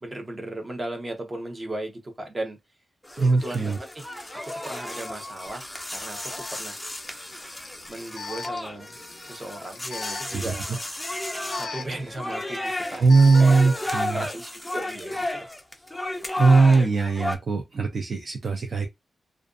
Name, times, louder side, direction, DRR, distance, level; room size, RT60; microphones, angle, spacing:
voice 1, 0.0-2.6 3.2-4.1 4.4-6.8 7.9-9.0 9.2-10.6 11.5-13.6 14.1-15.5, right 1 dB, 25° right, 0.7 m, -36 dB
sound 1, 3.0-17.4, left 1 dB, 10° left, 0.4 m, -33 dB
voice 2, 3.2-3.8 10.3-10.6 13.0-14.2 16.4-18.9, right 4 dB, 55° right, 0.4 m, -20 dB
Alarm, 5.5-5.6 6.3-13.6, left 5 dB, 90° left, 0.4 m, -41 dB
2.4 x 2.3 x 2.4 m
wide cardioid pair, 130°, 0 cm